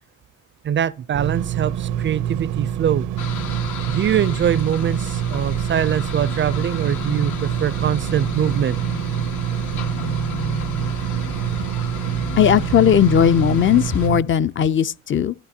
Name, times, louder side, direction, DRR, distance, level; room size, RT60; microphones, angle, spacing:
voice 1, 0.6-3.1 3.9-8.8, right 9 dB, 40° right, 0.4 m, -23 dB
sound 1, 1.1-14.2, right 10 dB, 85° right, 0.6 m, -26 dB
sound 2, 3.2-14.1, left 4 dB, 80° left, 1.3 m, -33 dB
voice 2, 12.4-15.3, left 9 dB, 40° left, 0.4 m, -17 dB
12.0 x 8.2 x 2.7 m
cardioid pair, 90°, 30 cm